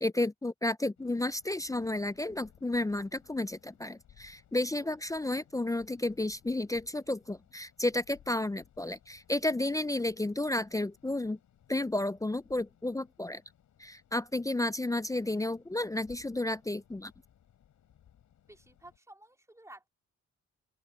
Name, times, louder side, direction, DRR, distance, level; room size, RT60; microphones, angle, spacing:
voice 1, 0.0-11.4 11.7-13.4 13.8-17.1, left 2 dB, 10° left, 0.4 m, -32 dB
sound 1, 1.0-19.0, left 10 dB, 80° left, 7.6 m, -63 dB
voice 2, 18.5-19.9, right 1 dB, 10° right, 3.7 m, -53 dB
open air
cardioid pair, 105°, 29 cm